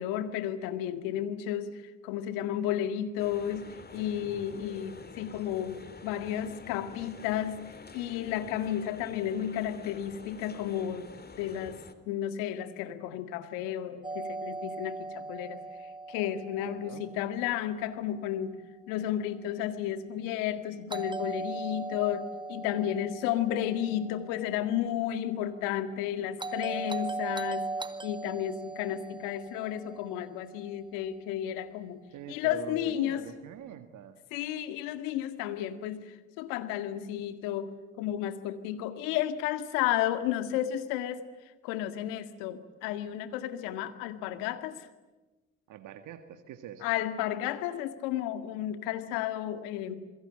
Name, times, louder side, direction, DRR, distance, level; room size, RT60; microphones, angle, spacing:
voice 1, 0.0-7.7 7.9-11.1 11.4-15.6 16.1-18.6 18.9-27.7 28.0-32.0 32.3-33.2 34.3-37.7 38.0-41.3 41.6-44.9 46.8-50.0, left 11 dB, 80° left, 10 dB, 2.0 m, -32 dB
sound 1, 3.2-11.9, left 4 dB, 30° left, 3.0 m, -48 dB
voice 2, 4.0-4.3 16.6-17.1 32.1-34.2 45.7-46.9, right 9 dB, 70° right, 8 dB, 1.8 m, -44 dB
Doorbell, 14.0-18.0 20.9-25.1 26.4-30.8, right 3 dB, 15° right, 2.1 m, -39 dB
27.0 x 22.5 x 8.9 m, 1.1 s
hypercardioid pair, 50°, 32 cm